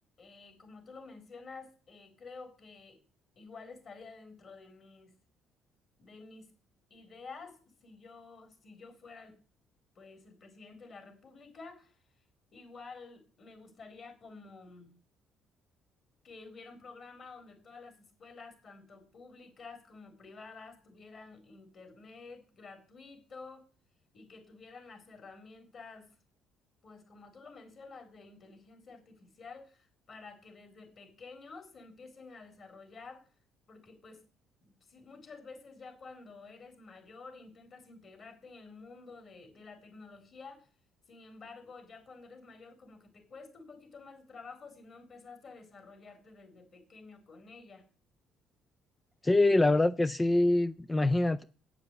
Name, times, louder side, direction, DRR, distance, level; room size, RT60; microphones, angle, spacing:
voice 1, 0.2-3.0 3.4-5.1 6.0-6.5 6.9-9.4 10.0-12.0 12.5-14.9 16.2-23.7 24.1-26.1 26.8-33.3 33.7-34.3 34.6-40.7 41.1-47.8, left 4 dB, 45° left, 3.8 m, -51 dB
voice 2, 49.2-51.4, left 2 dB, 15° left, 0.4 m, -25 dB
8.6 x 7.0 x 7.9 m
cardioid pair, 95°, 0 cm